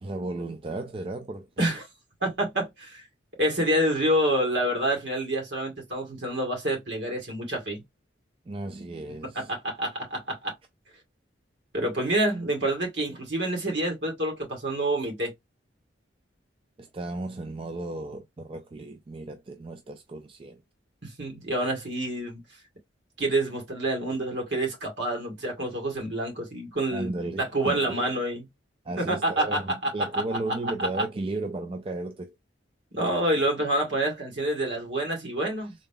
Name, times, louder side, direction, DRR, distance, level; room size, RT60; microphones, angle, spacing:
voice 1, 0.0-1.7 8.5-9.5 16.8-20.6 26.9-28.1 28.8-32.4 35.6-35.7, right 2 dB, 30° right, 0.4 m, -35 dB
voice 2, 2.2-3.0 3.4-7.8 9.4-10.5 11.7-15.3 21.0-22.4 23.2-27.1 27.4-28.4 29.0-30.2 30.8-30.9 32.9-35.7, right 1 dB, 65° right, 2.1 m, -27 dB
3.8 x 2.2 x 3.6 m
head